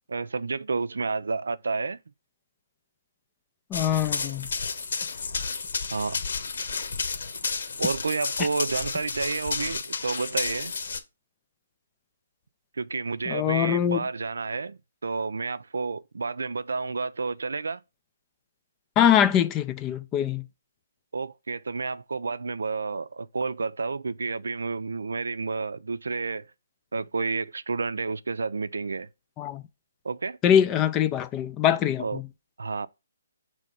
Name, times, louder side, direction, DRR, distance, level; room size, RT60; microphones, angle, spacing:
voice 1, 0.1-2.0 5.9-6.2 7.8-10.7 12.8-17.8 21.1-26.5 26.9-29.1 30.0-30.4 32.0-32.2 32.6-32.9, right 4 dB, 90° right, 0.5 m, -30 dB
Run, 3.7-11.0, left 5 dB, 60° left, 1.2 m, -31 dB
voice 2, 3.7-4.5 13.3-14.0 19.0-20.4 29.4-29.6 30.4-32.3, left 9 dB, 15° left, 0.3 m, -23 dB
6.2 x 3.3 x 5.3 m
hypercardioid pair, 170°, 0 cm